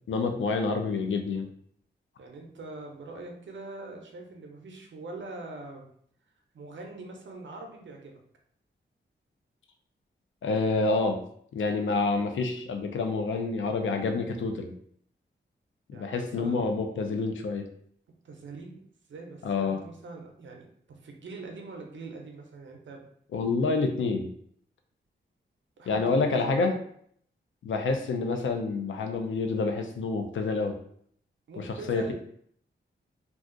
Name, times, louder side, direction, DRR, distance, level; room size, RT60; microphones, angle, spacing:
voice 1, 0.1-1.5 10.4-11.2 11.5-14.7 15.9-17.7 19.4-19.8 23.3-24.3 25.9-26.7 27.6-30.8 31.6-32.1, left 3 dB, 85° left, 4 dB, 0.5 m, -28 dB
voice 2, 2.2-5.9 6.5-8.2 15.9-17.0 18.2-18.8 19.1-23.0 25.8-26.0 26.3-26.7 28.0-28.2 31.5-32.1, right 3 dB, 75° right, 2 dB, 0.6 m, -43 dB
2.4 x 2.4 x 3.7 m, 0.65 s
wide cardioid pair, 135°, 20 cm